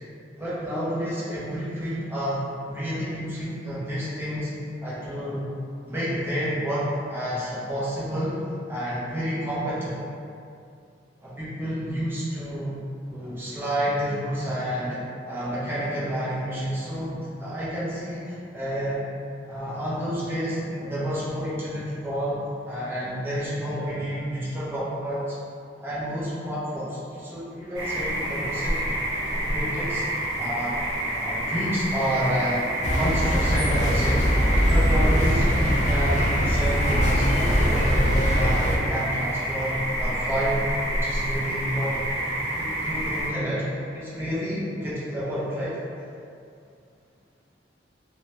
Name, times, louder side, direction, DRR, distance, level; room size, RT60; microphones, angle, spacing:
voice 1, 0.4-4.5 4.8-5.5 5.8-10.0 11.2-12.8 13.1-19.0 19.5-25.4 25.8-29.0 29.3-30.0 30.4-30.8 31.1-34.3 34.7-45.8, equal, 10° right, -10 dB, 0.6 m, -29 dB
sound 1, 27.7-43.3, right 1 dB, 80° right, 0.7 m, -28 dB
sound 2, 32.8-38.8, equal, 40° left, 0.4 m, -22 dB
3.0 x 2.1 x 2.9 m, 2.5 s
head